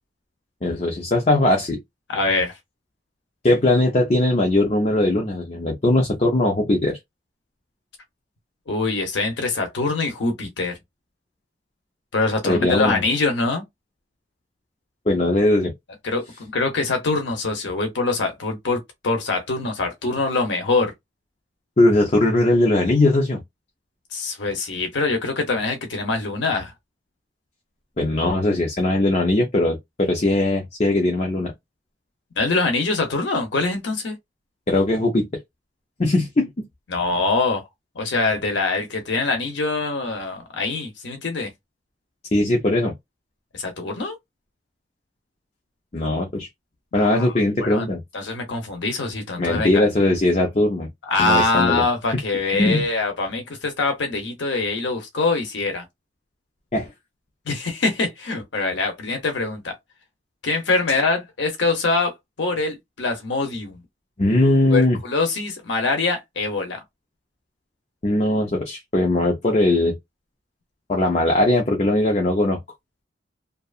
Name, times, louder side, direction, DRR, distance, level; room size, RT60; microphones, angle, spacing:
voice 1, 0.6-1.8 3.4-7.0 12.4-13.0 15.1-15.7 21.8-23.4 28.0-31.5 34.7-35.2 36.0-36.5 42.3-42.9 45.9-46.5 46.9-48.0 49.4-50.9 51.2-51.8 52.5-52.8 56.7-56.9 64.2-65.0 68.0-69.9 70.9-72.6, left 2 dB, 35° left, 0.6 m, -20 dB
voice 2, 2.1-2.6 8.7-10.8 12.1-13.6 16.0-20.9 24.1-26.7 32.4-34.1 36.9-37.6 38.0-41.5 43.5-44.2 47.0-47.3 47.6-47.8 48.1-49.9 51.1-55.8 57.5-59.7 60.4-62.1 62.4-63.8 64.7-66.8, left 3 dB, 90° left, 0.7 m, -24 dB
2.7 x 2.3 x 2.4 m
head